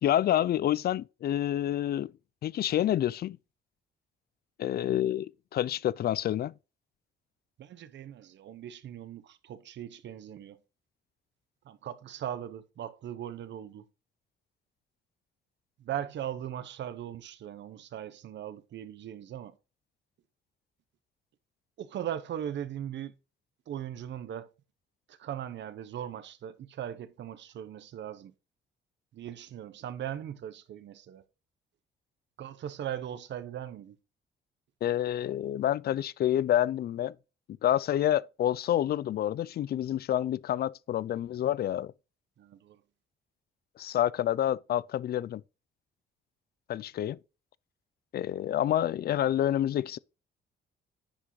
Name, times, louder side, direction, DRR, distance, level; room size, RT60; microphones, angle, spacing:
voice 1, 0.0-2.1 2.4-3.4 4.6-6.5 34.8-37.2 37.6-41.9 43.8-45.4 46.7-47.2 48.1-50.0, left 11 dB, 50° left, 0.4 m, -28 dB
voice 2, 7.6-10.6 11.6-13.8 15.8-19.6 21.8-23.1 23.7-24.5 25.1-28.3 29.1-31.2 32.4-34.0 42.4-42.8, right 10 dB, 65° right, 0.9 m, -39 dB
9.9 x 6.1 x 3.1 m
cardioid pair, 90°, 20 cm